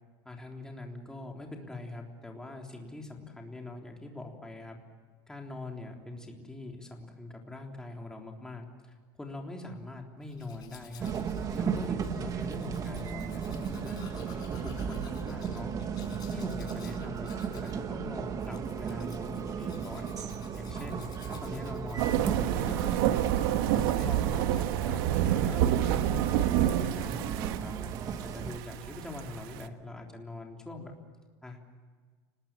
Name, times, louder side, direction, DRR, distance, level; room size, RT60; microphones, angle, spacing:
voice 1, 0.3-4.8 5.3-11.1 11.5-15.7 16.3-20.1 20.6-23.3 23.7-27.7 28.2-30.9 31.4-31.7, left 2 dB, 5° left, 1 dB, 3.5 m, -43 dB
Domestic sounds home sounds, 10.2-25.6 25.9-26.4, left 6 dB, 35° left, 5.8 m, -54 dB
sound 1, 11.0-28.6, right 7 dB, 30° right, 1.6 m, -35 dB
sound 2, 22.0-29.6, right 12 dB, 80° right, 1.4 m, -28 dB
29.5 x 20.0 x 7.4 m, 1.5 s
cardioid pair, 155°, 12 cm